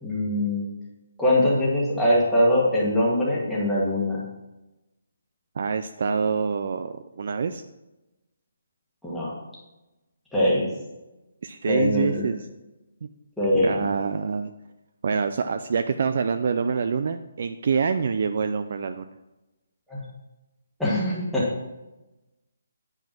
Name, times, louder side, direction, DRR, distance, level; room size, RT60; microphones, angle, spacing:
voice 1, 0.0-0.6 1.2-4.2 9.0-9.3 10.3-10.7 11.7-12.2 13.4-13.8 19.9-20.0 20.8-21.5, left 1 dB, ahead, -9 dB, 1.5 m, -22 dB
voice 2, 5.6-7.6 11.4-12.4 13.0-13.1 13.5-14.5 15.0-19.1, right 5 dB, 40° right, 9 dB, 0.3 m, -26 dB
9.4 x 5.3 x 5.8 m, 1.0 s
hypercardioid pair, 175°, 0 cm